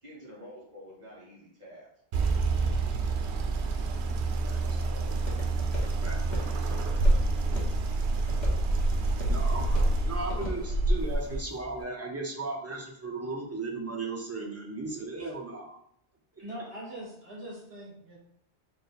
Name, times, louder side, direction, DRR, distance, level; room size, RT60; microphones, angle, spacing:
voice 1, 0.0-1.9 4.5-5.2 5.7-6.5, equal, 40° right, -6 dB, 1.3 m, -49 dB
sound 1, 2.1-11.4, right 2 dB, 80° right, 0.9 m, -27 dB
Walk footsteps, 3.9-11.8, right 1 dB, 45° left, 1.1 m, -39 dB
voice 2, 9.3-15.7, right 3 dB, 20° right, -1 dB, 0.4 m, -36 dB
voice 3, 16.4-18.2, right 1 dB, 60° right, -4 dB, 1.5 m, -42 dB
3.5 x 2.6 x 4.1 m, 0.73 s
omnidirectional pair, 1.1 m